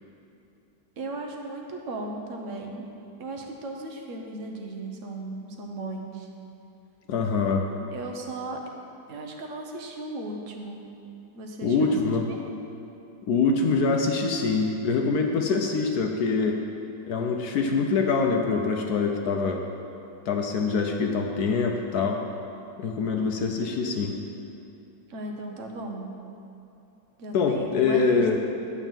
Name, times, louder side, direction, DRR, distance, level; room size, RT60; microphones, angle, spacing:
voice 1, 1.0-2.9 3.2-6.3 7.4-7.5 7.9-8.6 9.1-10.8 11.3-12.0 12.3-12.4 23.2-23.3 25.1-26.1 27.2-28.4, right 2 dB, 50° right, 2 dB, 1.0 m, -36 dB
voice 2, 7.1-7.7 11.6-12.3 13.3-16.6 17.1-19.6 20.3-22.2 22.8-24.1 27.3-28.4, left 4 dB, 65° left, 2 dB, 1.0 m, -24 dB
10.5 x 4.5 x 7.3 m, 2.8 s
omnidirectional pair, 2.1 m